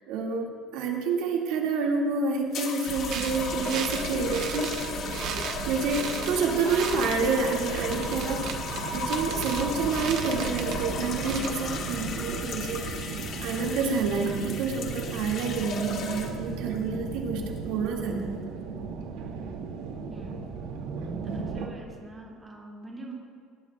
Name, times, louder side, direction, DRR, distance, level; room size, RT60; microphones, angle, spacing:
voice 1, 0.1-4.7 5.4-8.4 8.9-18.4, right 4 dB, 65° right, -1 dB, 2.1 m, -28 dB
sound 1, 2.5-16.5 17.4-17.8, left 5 dB, 40° left, 1.5 m, -36 dB
sound 2, 2.9-13.1, right 7 dB, 45° right, 1.1 m, -36 dB
sound 3, 7.7-21.7, right 5 dB, 90° right, 2.3 m, -36 dB
voice 2, 20.1-20.5 21.3-23.1, right 2 dB, 10° right, -4 dB, 2.4 m, -44 dB
19.5 x 19.5 x 2.4 m, 2.1 s
cardioid pair, 175°, 0 cm